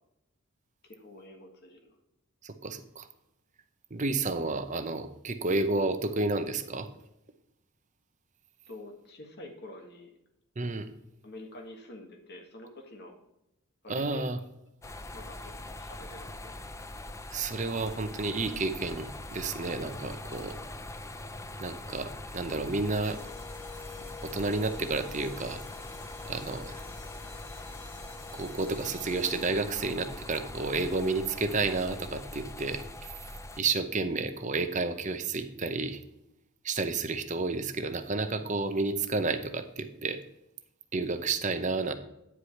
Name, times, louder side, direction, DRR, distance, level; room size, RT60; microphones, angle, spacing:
voice 1, 0.8-2.0 8.7-10.1 10.6-10.7 11.2-13.1 13.8-14.2 15.1-16.5, left 1 dB, 50° left, 3 dB, 1.6 m, -47 dB
voice 2, 2.4-3.1 3.9-6.9 10.6-10.9 13.9-14.4 17.3-20.6 21.6-23.2 24.2-25.6 26.3-26.8 28.3-32.8 33.6-36.0 36.6-40.2 40.9-41.9, right 3 dB, 35° right, 9 dB, 0.7 m, -31 dB
sound 1, 14.8-33.6, left 2 dB, 15° left, 0.4 m, -43 dB
sound 2, 23.0-29.8, left 6 dB, 30° left, 1.8 m, -48 dB
9.9 x 4.8 x 5.7 m, 0.85 s
head